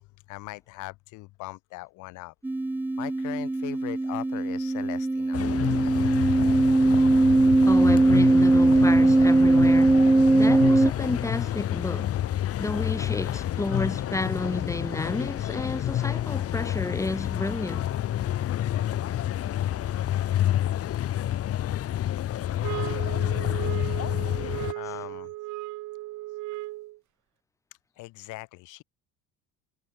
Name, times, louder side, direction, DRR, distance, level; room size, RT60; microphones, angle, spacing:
voice 1, 0.0-2.3 3.0-5.5 13.1-13.6 22.7-23.0 24.7-25.3 28.0-28.8, left 22 dB, 75° left, 3.3 m, -40 dB
sound 1, 2.4-10.9, right 2 dB, 5° right, 0.6 m, -20 dB
sound 2, 5.3-24.7, left 12 dB, 50° left, 2.7 m, -29 dB
voice 2, 7.6-12.2 12.6-17.9, left 2 dB, 10° left, 1.6 m, -31 dB
sound 3, 22.6-27.0, right 19 dB, 65° right, 3.3 m, -36 dB
cardioid pair, 115°, 31 cm